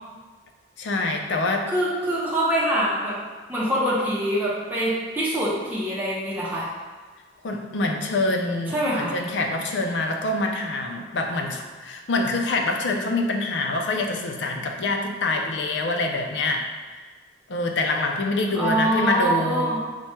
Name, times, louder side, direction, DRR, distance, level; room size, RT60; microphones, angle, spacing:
voice 1, 0.8-1.7 7.4-16.6 17.5-19.7, left 2 dB, 70° left, 3 dB, 0.5 m, -25 dB
voice 2, 1.7-3.2 3.5-6.7 8.7-9.2 18.6-19.8, right 1 dB, 10° right, -7 dB, 0.7 m, -24 dB
4.5 x 2.3 x 4.3 m, 1.4 s
head